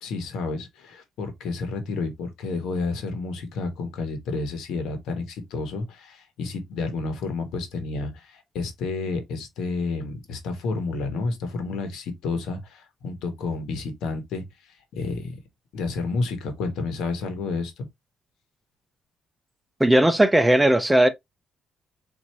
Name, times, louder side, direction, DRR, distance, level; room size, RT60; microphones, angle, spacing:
voice 1, 0.0-15.3 15.7-17.9, left 3 dB, 85° left, 1.1 m, -30 dB
voice 2, 19.8-21.1, right 1 dB, 10° right, 0.5 m, -17 dB
4.4 x 2.6 x 2.8 m
cardioid pair, 90°, 0 cm